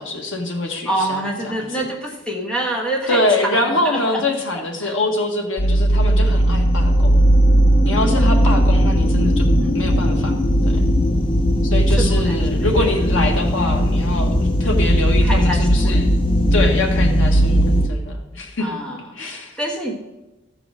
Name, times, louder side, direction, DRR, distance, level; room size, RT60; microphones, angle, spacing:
voice 1, 0.0-1.5 3.1-7.2 7.8-9.5 9.7-10.4 10.6-10.8 11.6-16.2 16.5-18.7 19.2-19.6, left 2 dB, 75° left, 2 dB, 1.6 m, -24 dB
voice 2, 0.8-4.2 4.5-5.0 9.2-9.3 9.6-9.8 11.9-12.9 15.2-16.0 18.6-19.9, right 1 dB, 5° left, -1 dB, 1.3 m, -27 dB
sound 1, 5.6-17.9, equal, 25° left, 0.6 m, -17 dB
13.5 x 4.9 x 6.3 m, 1.0 s
head